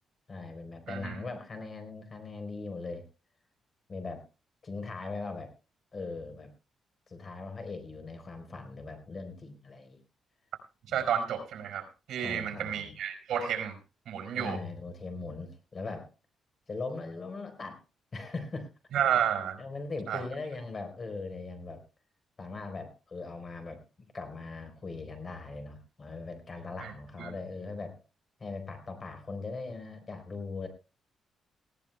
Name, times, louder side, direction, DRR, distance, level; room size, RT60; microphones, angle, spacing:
voice 1, 0.3-3.1 3.9-4.2 4.6-5.5 5.9-6.5 7.1-10.0 10.9-11.1 12.2-12.9 14.3-16.1 16.7-17.8 18.1-18.7 19.6-21.8 22.4-28.0 28.4-30.7, left 3 dB, 35° left, 7 dB, 4.0 m, -40 dB
voice 2, 0.9-1.2 10.9-13.8 14.1-14.6 18.9-19.6 20.1-20.2 26.8-26.9 27.2-27.3, right 9 dB, 75° right, 6 dB, 4.6 m, -31 dB
19.0 x 17.0 x 2.3 m, 0.31 s
cardioid pair, 100°, 0 cm